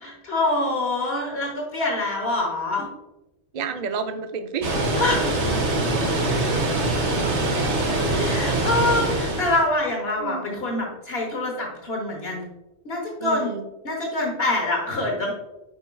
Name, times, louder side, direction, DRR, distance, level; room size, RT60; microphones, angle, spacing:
voice 1, 0.0-2.9 5.0-5.7 8.1-12.4 12.8-13.5 13.8-15.3, left 2 dB, 60° left, 0 dB, 1.3 m, -25 dB
voice 2, 3.5-4.8 10.2-10.5 13.2-13.6, right 5 dB, 55° right, 7 dB, 0.5 m, -30 dB
Water, 4.6-9.7, right 2 dB, 80° right, 1.5 m, -23 dB
7.9 x 5.6 x 2.3 m, 0.96 s
omnidirectional pair, 1.1 m